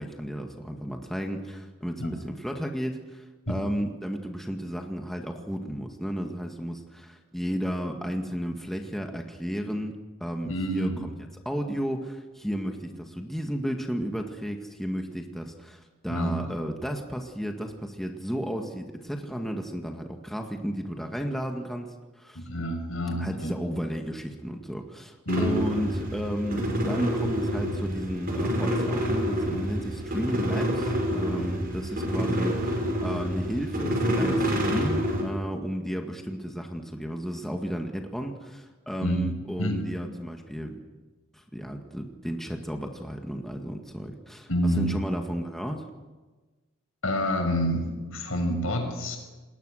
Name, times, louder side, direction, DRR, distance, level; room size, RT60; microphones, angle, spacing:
voice 1, 0.0-9.9 10.2-11.1 11.5-22.4 23.2-40.8 41.3-45.9, equal, ahead, 3 dB, 1.9 m, -33 dB
voice 2, 10.4-11.0 16.1-16.3 22.3-23.5 25.3-25.6 39.0-39.3 39.6-39.8 44.5-44.9 47.0-49.2, equal, 80° left, 3 dB, 6.5 m, -28 dB
sound 1, 25.3-35.2, equal, 45° right, 6.3 m, -27 dB
28.5 x 20.5 x 6.5 m, 1.2 s
head